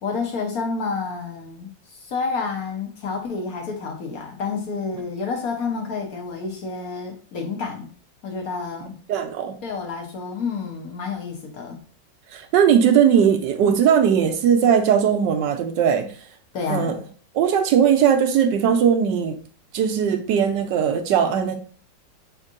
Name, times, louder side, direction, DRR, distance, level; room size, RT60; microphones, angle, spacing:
voice 1, 0.0-7.9 8.2-8.9 9.6-11.8 16.5-17.0, left 4 dB, 60° left, 1.2 m, -29 dB
voice 2, 9.1-9.5 12.3-16.1 16.7-16.9 17.3-19.4 19.7-21.6, right 8 dB, 75° right, 1.2 m, -19 dB
5.2 x 3.6 x 2.4 m
omnidirectional pair, 2.0 m